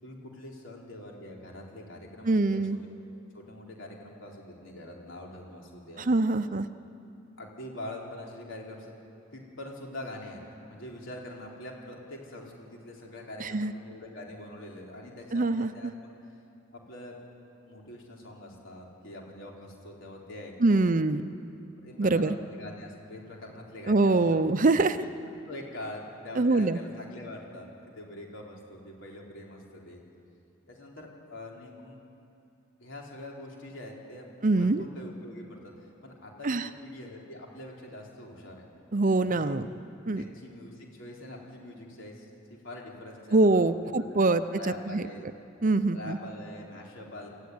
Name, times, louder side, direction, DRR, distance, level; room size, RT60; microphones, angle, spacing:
voice 1, 0.0-2.6 3.3-6.1 7.4-8.9 9.3-10.4 10.7-16.1 16.7-17.2 17.7-21.0 21.8-24.4 25.0-25.1 25.5-30.0 30.7-32.0 32.8-38.6 39.2-39.6 40.1-43.9 44.2-45.3 45.9-47.3, left 1 dB, 65° left, -1 dB, 4.3 m, -44 dB
voice 2, 2.3-2.8 6.0-6.7 13.4-13.7 15.3-15.9 20.6-21.2 22.0-22.4 23.9-25.0 26.4-26.8 34.4-34.8 36.4-36.7 38.9-39.7 40.1-40.2 43.3-45.1 45.6-46.2, right 2 dB, 40° right, 11 dB, 0.7 m, -24 dB
27.0 x 14.5 x 9.7 m, 2.7 s
head